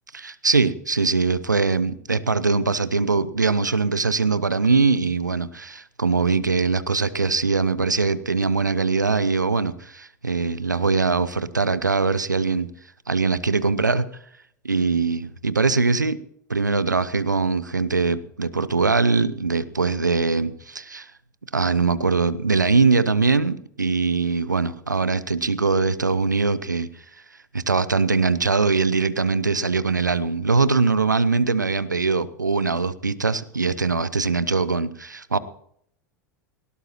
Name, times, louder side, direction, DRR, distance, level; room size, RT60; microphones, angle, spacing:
voice 1, 0.1-12.7 13.1-14.1 14.6-16.2 16.5-21.1 21.5-26.9 27.5-35.4, right 4 dB, 85° right, 17 dB, 0.7 m, -22 dB
19.0 x 17.5 x 3.0 m, 0.68 s
figure-of-eight pair, 85°, 10 cm